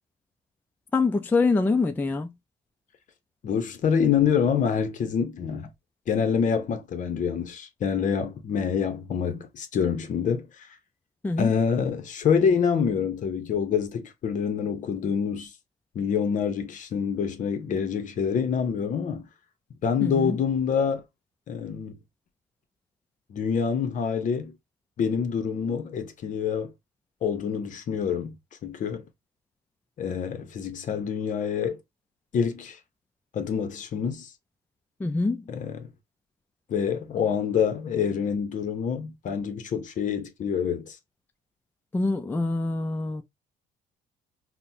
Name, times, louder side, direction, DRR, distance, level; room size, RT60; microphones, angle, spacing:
voice 1, 0.9-2.3 11.2-11.5 20.0-20.4 35.0-35.4 41.9-43.2, left 3 dB, 10° left, 0.3 m, -25 dB
voice 2, 3.4-5.7 6.1-10.7 11.4-15.5 15.9-19.3 19.8-21.0 21.5-22.0 23.3-24.5 25.0-26.7 27.2-28.3 28.6-29.0 30.0-31.8 32.3-32.8 33.3-34.3 35.5-35.9 36.7-41.0, left 7 dB, 50° left, 0.7 m, -26 dB
4.0 x 2.1 x 2.7 m
cardioid pair, 110°, 17 cm